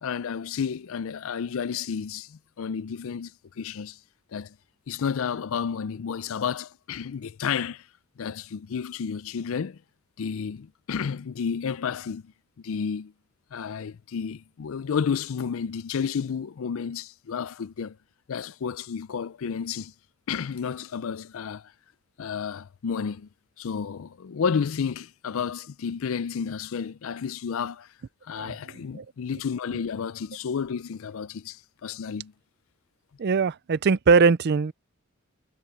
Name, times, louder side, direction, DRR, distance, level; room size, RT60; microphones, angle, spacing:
voice 1, 0.0-3.3 3.6-4.0 4.3-4.6 4.9-7.8 8.2-9.8 10.2-12.3 12.6-13.1 13.5-18.0 18.3-19.9 20.3-21.7 22.2-23.3 23.6-27.9 28.3-32.3, left 6 dB, 70° left, 0.4 m, -31 dB
voice 2, 33.2-34.7, right 5 dB, 50° right, 0.4 m, -21 dB
head